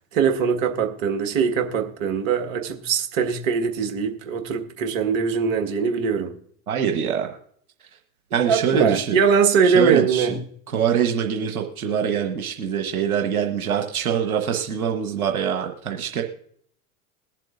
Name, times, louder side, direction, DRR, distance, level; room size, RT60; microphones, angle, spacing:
voice 1, 0.1-6.3 8.3-10.4, right 6 dB, 55° right, 1.6 m, -22 dB
voice 2, 6.7-7.3 8.3-9.2 9.6-10.4 10.7-16.2, right 8 dB, 85° right, 1.2 m, -24 dB
21.5 x 7.6 x 2.5 m
hypercardioid pair, 90°, 43 cm